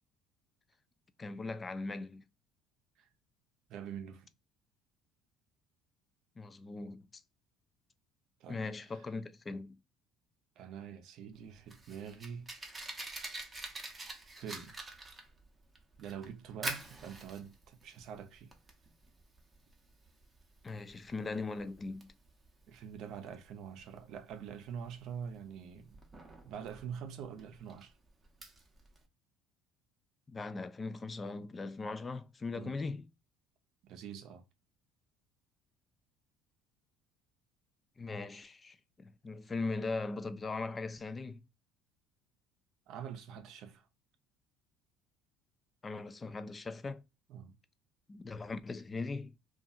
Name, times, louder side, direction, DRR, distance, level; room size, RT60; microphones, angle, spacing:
voice 1, 1.2-2.3 6.4-7.1 8.5-9.8 20.6-22.1 30.3-33.1 38.0-41.5 45.8-47.0 48.1-49.3, left 3 dB, 20° left, 0.3 m, -39 dB
voice 2, 3.7-4.3 8.4-8.6 8.9-9.0 10.6-12.5 14.4-14.8 16.0-18.5 22.7-26.0 26.4-27.9 32.5-32.8 33.8-34.4 42.9-43.9 47.3-47.6, right 8 dB, 60° right, 0.6 m, -45 dB
Fire, 11.3-29.0, right 2 dB, 15° right, 0.6 m, -47 dB
2.7 x 2.4 x 2.3 m
cardioid pair, 120°, 0 cm